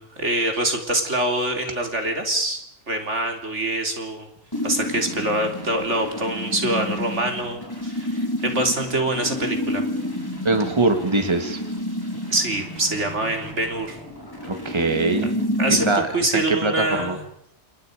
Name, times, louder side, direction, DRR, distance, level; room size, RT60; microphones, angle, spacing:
voice 1, 0.0-2.6 2.9-4.3 4.6-9.8 12.3-14.0 15.6-17.2, right 1 dB, 65° right, 4 dB, 3.8 m, -25 dB
sound 1, 4.5-16.0, left 1 dB, 15° left, 5.8 m, -30 dB
voice 2, 10.4-11.6 14.4-15.3 15.9-16.1 16.3-17.2, right 2 dB, 20° right, 5 dB, 2.4 m, -22 dB
29.0 x 29.0 x 5.2 m, 0.71 s
omnidirectional pair, 1.3 m